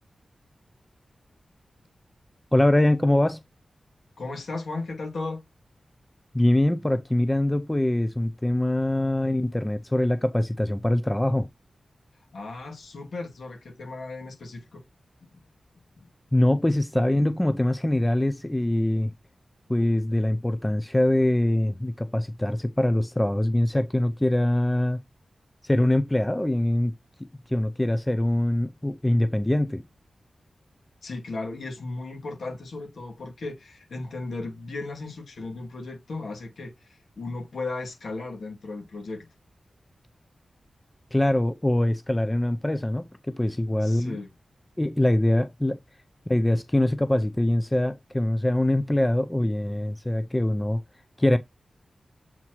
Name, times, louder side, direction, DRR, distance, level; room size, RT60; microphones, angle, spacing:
voice 1, 2.5-3.4 6.3-11.5 16.3-19.1 19.7-25.0 25.6-26.9 27.5-29.8 41.1-44.2 44.8-45.8 46.3-50.8 51.2-51.4, left 1 dB, 10° left, 0.4 m, -23 dB
voice 2, 4.2-5.5 12.3-14.8 15.2-15.4 16.0-16.1 31.0-39.3 43.8-44.3, left 3 dB, 70° left, 2.4 m, -36 dB
7.2 x 4.4 x 3.0 m
wide cardioid pair, 155°, 0 cm